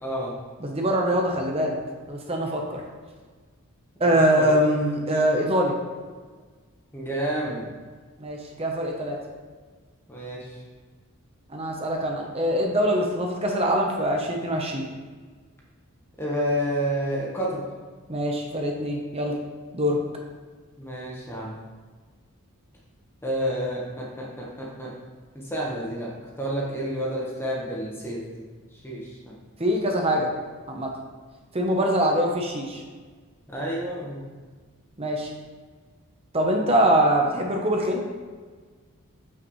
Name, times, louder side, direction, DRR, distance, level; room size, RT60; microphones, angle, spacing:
voice 1, 0.0-0.3 4.0-4.5 5.0-5.3 6.9-7.7 10.1-10.6 16.2-17.6 20.8-21.6 23.2-24.9 25.3-28.4 28.7-29.3 33.5-34.2 36.5-36.7, equal, 10° left, -4 dB, 1.2 m, -30 dB
voice 2, 0.6-1.8 2.1-2.8 4.0-5.7 8.2-9.2 11.5-14.8 18.1-19.4 19.7-20.0 29.6-30.3 30.7-30.9 31.5-32.8 35.0-35.3 36.3-38.0, equal, 25° right, 1 dB, 0.9 m, -23 dB
7.7 x 6.0 x 3.2 m, 1.4 s
head